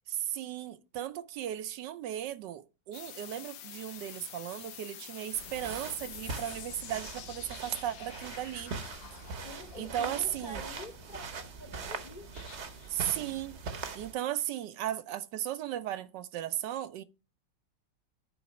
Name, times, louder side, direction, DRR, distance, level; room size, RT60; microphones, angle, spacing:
voice 1, 0.1-8.8 9.1-9.2 9.8-10.6 12.9-17.0, right 11 dB, 75° right, 1.2 m, -36 dB
sound 1, 2.9-11.3 12.3-13.4, left 10 dB, 90° left, 1.5 m, -48 dB
sound 2, 5.3-14.1, right 4 dB, 50° right, 1.0 m, -42 dB
voice 2, 9.4-12.3, left 1 dB, 35° left, 0.7 m, -47 dB
9.3 x 3.9 x 5.8 m
omnidirectional pair, 2.0 m